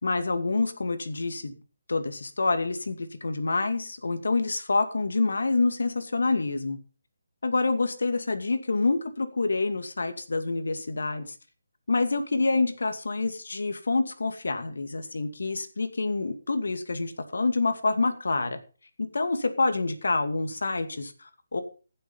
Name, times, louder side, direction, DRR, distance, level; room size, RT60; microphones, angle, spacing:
voice 1, 0.0-1.5 1.9-6.8 7.4-11.3 11.9-18.6 19.0-21.6, left 3 dB, 75° left, 8 dB, 2.4 m, -27 dB
15.5 x 7.9 x 5.6 m, 0.36 s
figure-of-eight pair, 155°, 0 cm